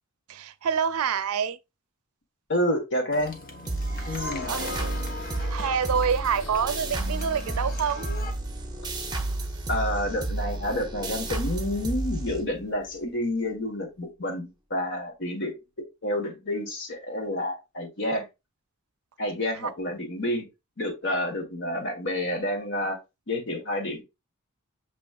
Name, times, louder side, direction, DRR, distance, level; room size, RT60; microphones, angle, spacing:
voice 1, 0.3-1.6 3.9-8.1 19.6-19.7, right 7 dB, 85° right, 0.5 m, -28 dB
voice 2, 2.5-3.4 4.0-4.5 9.7-15.6 16.0-18.2 19.2-20.5 20.8-23.0 23.3-24.0, left 1 dB, 55° left, 1.5 m, -29 dB
sound 1, 3.1-8.3, left 3 dB, 40° left, 1.0 m, -39 dB
sound 2, 3.7-12.9, right 2 dB, 20° right, 0.7 m, -31 dB
6.9 x 3.1 x 2.4 m
head